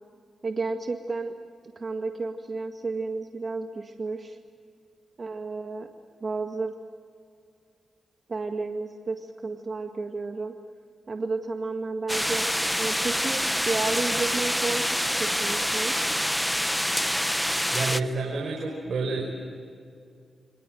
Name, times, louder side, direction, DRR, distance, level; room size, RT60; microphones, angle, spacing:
voice 1, 0.4-1.3 1.8-4.4 5.2-5.9 6.2-6.7 8.3-10.5 11.1-14.8 15.2-15.9, right 3 dB, 45° right, 4 dB, 1.9 m, -32 dB
sound 1, 12.1-18.0, equal, 5° left, 1.0 m, -26 dB
voice 2, 17.7-19.2, right 3 dB, 65° right, 0 dB, 5.4 m, -29 dB
29.5 x 24.0 x 7.9 m, 2.3 s
cardioid pair, 60°, 0 cm